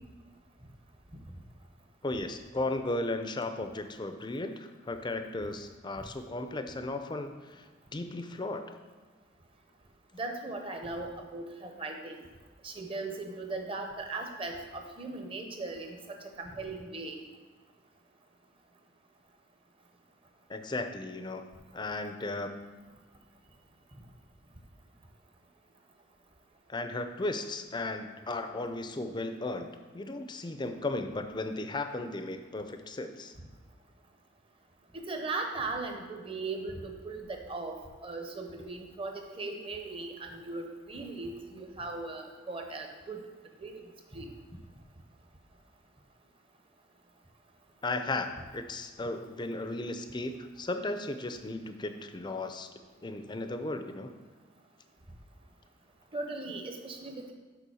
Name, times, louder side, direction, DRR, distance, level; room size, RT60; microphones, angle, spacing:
voice 1, 2.0-7.7 7.9-8.8 20.5-21.4 21.7-22.6 26.7-33.3 47.8-48.3 48.5-52.7 53.0-54.1, left 2 dB, 25° left, 7 dB, 0.5 m, -35 dB
voice 2, 10.1-12.2 12.6-17.2 34.9-37.8 38.0-43.2 43.6-43.8 44.1-44.3 56.1-57.3, right 3 dB, 30° right, 3 dB, 0.9 m, -38 dB
6.8 x 5.2 x 6.2 m, 1.4 s
head